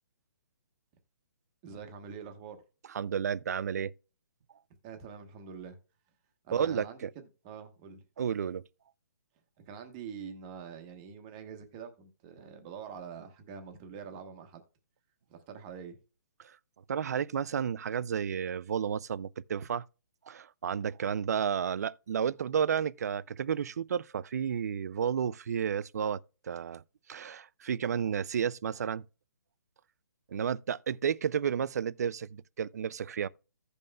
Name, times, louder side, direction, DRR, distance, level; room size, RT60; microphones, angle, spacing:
voice 1, 1.6-2.6 4.8-5.7 6.4-8.0 9.6-14.6 15.3-16.0, right 6 dB, 20° right, 1.0 m, -45 dB
voice 2, 2.9-3.9 6.5-7.1 8.2-8.6 16.9-19.8 20.3-26.2 26.5-26.8 27.1-29.0 30.3-33.3, right 8 dB, 55° right, 0.4 m, -32 dB
15.5 x 5.4 x 2.2 m
hypercardioid pair, 170°, 11 cm